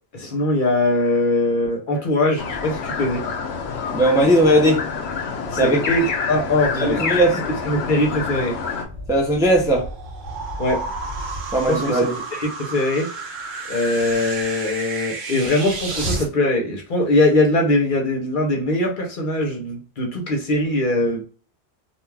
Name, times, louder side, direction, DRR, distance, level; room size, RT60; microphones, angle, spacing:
voice 1, 0.1-3.2 5.5-7.0 7.3-8.5 10.6-10.8 11.7-12.0 12.3-13.1 13.7-21.2, left 2 dB, 55° left, 0.8 m, -21 dB
sound 1, 2.4-8.9, left 5 dB, 80° left, 0.9 m, -27 dB
voice 2, 3.9-4.8 5.6-5.8 6.8-7.4 9.1-9.8 11.5-12.1, right 1 dB, 5° right, 0.5 m, -17 dB
sound 2, 8.8-16.3, right 2 dB, 55° right, 0.7 m, -31 dB
2.4 x 2.3 x 3.2 m
omnidirectional pair, 1.1 m